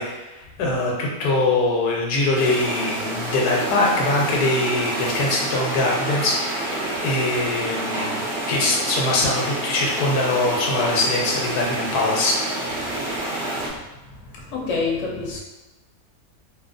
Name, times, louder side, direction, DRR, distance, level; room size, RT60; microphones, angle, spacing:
voice 1, 0.0-8.2 8.5-12.4, left 2 dB, 90° left, -2 dB, 1.2 m, -22 dB
sound 1, 2.3-13.7, right 1 dB, 60° right, 0.5 m, -28 dB
voice 2, 14.1-15.4, left 4 dB, 60° left, -2 dB, 0.9 m, -27 dB
2.9 x 2.4 x 2.5 m, 1.1 s
omnidirectional pair, 1.6 m